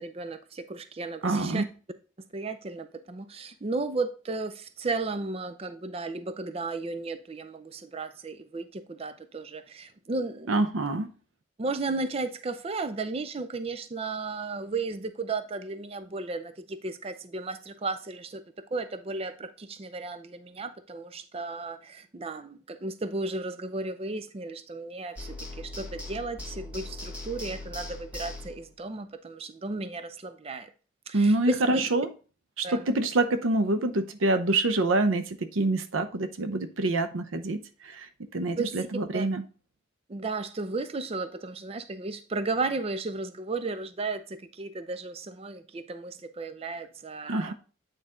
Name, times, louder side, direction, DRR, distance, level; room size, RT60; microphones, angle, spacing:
voice 1, 0.0-1.6 2.3-10.6 11.6-18.4 18.7-30.7 31.1-31.9 32.6-32.8 38.6-38.9 39.1-39.2 40.1-47.5, right 3 dB, 30° right, 0.4 m, -34 dB
voice 2, 1.2-1.7 10.5-11.1 31.1-32.1 32.6-39.4 47.3-47.5, right 2 dB, 90° right, 0.7 m, -26 dB
sound 1, 25.2-28.7, left 2 dB, 5° right, 1.6 m, -40 dB
8.9 x 4.1 x 3.7 m
head